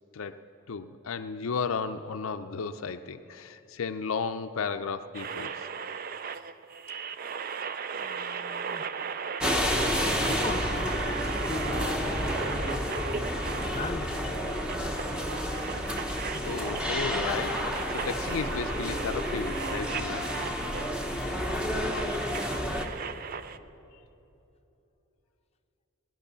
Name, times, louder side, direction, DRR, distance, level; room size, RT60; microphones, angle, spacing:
voice 1, 0.7-5.7 13.6-13.7 16.4-20.3 21.3-21.4, left 5 dB, 70° left, 9 dB, 0.5 m, -34 dB
sound 1, 5.1-23.6, right 6 dB, 40° right, 0.4 m, -37 dB
voice 2, 7.9-8.9 10.2-12.8 13.2-14.4 21.4-22.4, left 2 dB, 30° left, 5 dB, 0.6 m, -40 dB
sound 2, 9.4-22.9, left 1 dB, 5° right, 0.9 m, -30 dB
19.5 x 11.0 x 6.8 m, 2.9 s
head